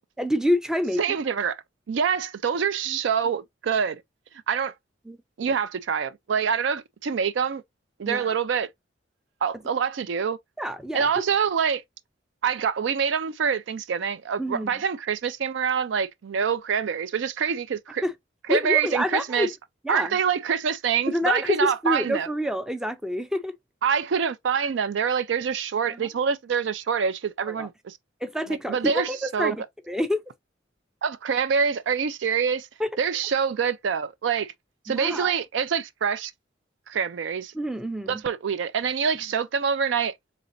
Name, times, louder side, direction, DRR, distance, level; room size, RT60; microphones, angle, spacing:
voice 1, 0.2-1.2 2.9-3.0 5.1-5.2 8.0-8.2 10.6-11.2 14.4-14.7 18.0-18.1 18.5-19.5 19.8-20.2 21.1-23.5 25.9-26.1 27.5-27.7 28.2-30.2 32.8-32.9 34.9-35.3 37.5-38.2, left 1 dB, 5° right, 0.4 m, -27 dB
voice 2, 1.0-1.6 1.9-4.0 4.5-4.7 5.4-7.6 8.0-8.7 9.4-10.4 10.9-11.8 12.4-18.0 18.5-19.5 19.9-22.3 23.8-28.0 28.5-29.6 31.0-32.7 33.0-34.5 34.9-36.3 36.9-37.5 38.1-40.1, right 6 dB, 70° right, 0.4 m, -25 dB
4.0 x 3.2 x 2.5 m
head